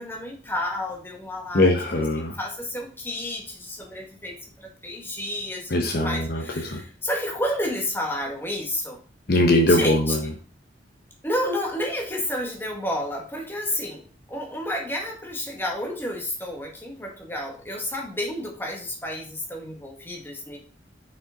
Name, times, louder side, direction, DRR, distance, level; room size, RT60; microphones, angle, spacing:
voice 1, 0.0-1.7 2.2-9.0 9.7-10.0 11.2-14.0 14.3-20.6, left 1 dB, 10° left, 0 dB, 1.6 m, -30 dB
voice 2, 1.5-2.4 5.7-6.8 9.3-10.3, left 1 dB, 55° left, 2 dB, 0.9 m, -21 dB
5.8 x 5.3 x 3.8 m, 0.37 s
head